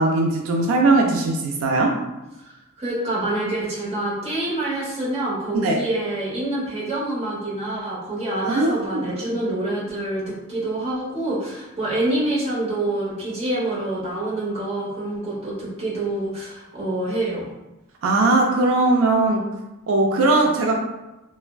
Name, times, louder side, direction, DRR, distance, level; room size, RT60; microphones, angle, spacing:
voice 1, 0.0-1.9 5.5-5.8 8.4-9.0 18.0-19.4 19.9-20.8, right 2 dB, 85° right, 1 dB, 0.4 m, -19 dB
voice 2, 2.4-17.5, right 1 dB, 30° right, -7 dB, 0.8 m, -26 dB
3.3 x 2.1 x 2.2 m, 0.99 s
head